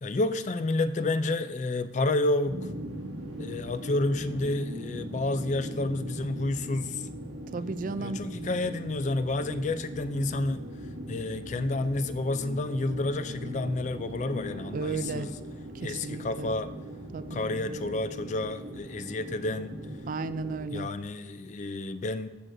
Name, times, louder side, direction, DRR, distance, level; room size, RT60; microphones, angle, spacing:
voice 1, 0.0-2.6 3.4-7.1 8.0-10.6 11.1-15.3 15.8-16.7 17.3-19.7 20.7-22.3, left 2 dB, 40° left, 12 dB, 0.3 m, -30 dB
sound 1, 2.4-20.6, equal, 80° right, 1.2 m, -40 dB
voice 2, 7.5-8.2 14.7-15.3 15.8-16.5 17.1-17.3 20.1-20.9, right 4 dB, 45° right, 13 dB, 0.3 m, -33 dB
15.0 x 6.4 x 2.6 m, 1.2 s
head